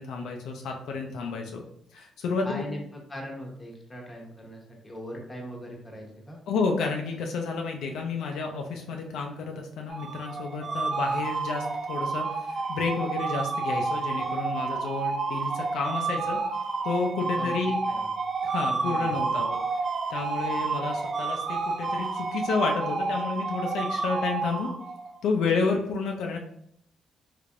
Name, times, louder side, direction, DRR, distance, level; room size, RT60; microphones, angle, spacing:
voice 1, 0.0-1.6 1.9-2.7 6.5-16.4 16.8-17.8 18.4-19.6 20.1-24.7 25.2-26.4, left 4 dB, 80° left, 2 dB, 0.4 m, -30 dB
voice 2, 2.4-6.4 17.4-17.5 17.9-18.1 18.8-19.3, equal, 20° left, -1 dB, 1.0 m, -40 dB
sound 1, 9.9-25.2, right 4 dB, 40° right, 0.4 m, -30 dB
3.3 x 3.3 x 2.5 m, 0.70 s
cardioid pair, 90°, 0 cm